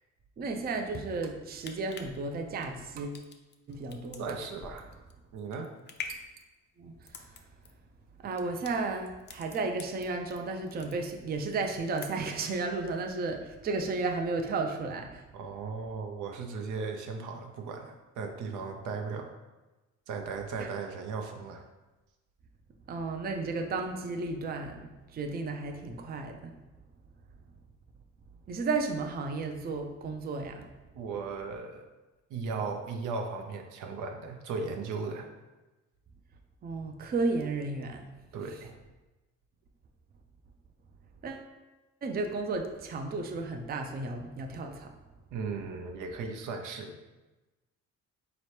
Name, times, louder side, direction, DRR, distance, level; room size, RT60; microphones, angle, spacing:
voice 1, 0.4-3.2 3.7-4.3 6.8-7.3 8.2-15.2 20.6-20.7 22.9-26.5 28.5-30.7 36.6-38.1 41.2-41.5 42.0-44.9, right 3 dB, 30° right, 4 dB, 0.4 m, -33 dB
sound 1, 1.6-10.4 10.7-11.4 11.7-12.4 12.8-12.9, left 5 dB, 35° left, 0.4 m, -46 dB
voice 2, 4.2-4.9 5.3-5.7 15.3-19.3 20.1-21.6 31.0-31.9 32.3-35.3 38.3-38.7 45.3-47.0, right 4 dB, 80° right, 4 dB, 0.6 m, -37 dB
4.0 x 2.9 x 3.2 m, 1.1 s
cardioid pair, 90°, 30 cm